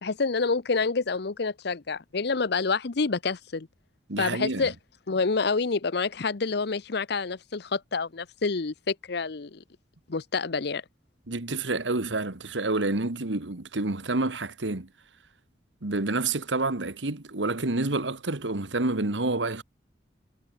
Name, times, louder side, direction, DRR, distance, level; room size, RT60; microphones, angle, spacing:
voice 1, 0.0-3.7 4.2-4.7 5.1-9.6 10.1-10.8, left 4 dB, 65° left, 0.8 m, -28 dB
voice 2, 4.1-4.7 11.3-14.9 15.8-19.6, right 2 dB, 85° right, 1.8 m, -28 dB
head